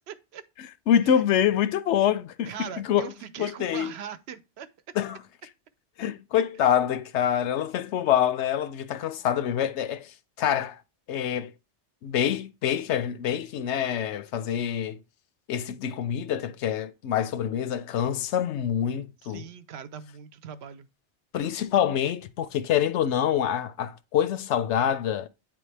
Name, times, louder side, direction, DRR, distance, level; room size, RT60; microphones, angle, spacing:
voice 1, 0.1-0.4 2.5-4.7 19.2-20.9, right 8 dB, 70° right, 0.8 m, -40 dB
voice 2, 0.6-3.1 3.4-3.9 4.9-5.2 6.0-10.8 11.1-11.5 12.0-15.0 15.5-19.5 21.3-25.3, left 9 dB, 90° left, 0.9 m, -26 dB
8.8 x 3.4 x 3.3 m
omnidirectional pair, 1.2 m